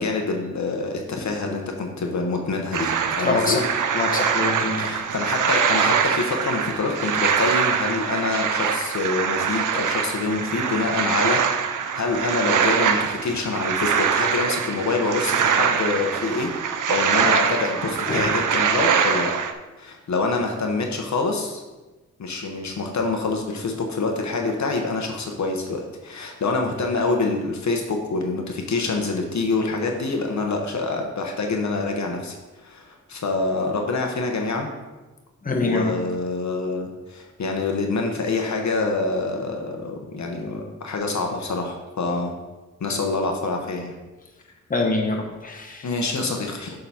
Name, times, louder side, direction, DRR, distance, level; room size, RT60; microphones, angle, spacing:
voice 1, 0.0-3.6 4.8-11.4 11.9-16.5 16.9-19.3 19.8-21.6 22.2-34.7 35.6-42.4 42.8-43.9 45.8-46.8, left 3 dB, 65° left, 2 dB, 0.9 m, -26 dB
sound 1, 2.7-19.5, right 7 dB, 90° right, 0.6 m, -23 dB
voice 2, 3.2-3.7 3.9-4.9 18.1-18.3 35.4-35.9 44.7-45.9, left 3 dB, 30° left, 1 dB, 1.0 m, -24 dB
6.9 x 3.9 x 5.6 m, 1.2 s
wide cardioid pair, 115°, 30 cm